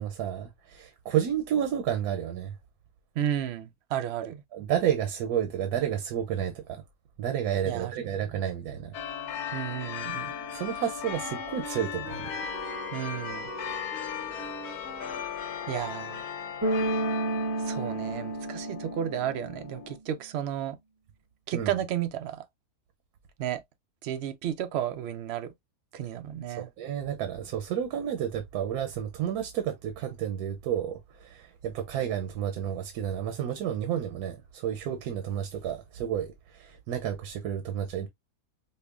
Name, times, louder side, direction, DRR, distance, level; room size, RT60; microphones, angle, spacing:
voice 1, 0.0-2.6 4.5-6.8 7.2-8.9 10.5-12.3 21.5-21.7 26.6-38.1, right 9 dB, 90° right, 1.2 m, -31 dB
voice 2, 3.1-4.4 7.6-8.1 9.5-10.3 12.9-13.5 15.7-16.3 17.6-20.8 21.5-22.4 23.4-23.6 24.0-25.5 25.9-26.7, right 10 dB, 65° right, 0.6 m, -33 dB
sound 1, 8.9-20.0, left 8 dB, 85° left, 1.3 m, -37 dB
Wind instrument woodwind instrument, 10.1-16.9, right 2 dB, 40° right, 1.5 m, -45 dB
Bass guitar, 16.6-19.7, right 2 dB, 20° right, 0.6 m, -31 dB
5.3 x 2.1 x 2.4 m
omnidirectional pair, 1.6 m